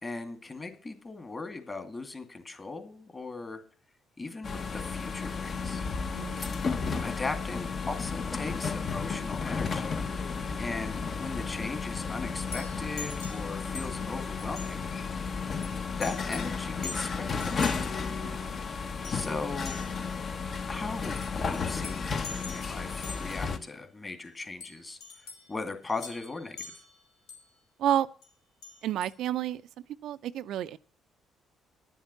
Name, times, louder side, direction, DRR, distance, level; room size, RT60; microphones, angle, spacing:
voice 1, 0.0-3.6 4.2-5.8 7.0-10.0 10.6-14.8 16.0-17.7 19.1-19.7 20.7-25.0 25.5-26.6, left 3 dB, 30° left, 2.4 m, -38 dB
sound 1, 4.4-23.6, left 5 dB, 50° left, 1.1 m, -33 dB
voice 2, 6.1-6.5 18.2-18.5 27.8-28.1 28.8-29.6 30.0-30.8, right 11 dB, 75° right, 0.4 m, -30 dB
sound 2, 12.5-14.1 14.4-14.8 15.6-15.7 16.0-16.6 16.8-17.8 19.0-19.4 19.7-20.1 21.2-23.5 24.6-25.5 25.9-27.5 28.2-28.3 28.6-29.1, left 5 dB, 85° left, 2.3 m, -45 dB
10.5 x 7.3 x 7.0 m
supercardioid pair, 70°, 0 cm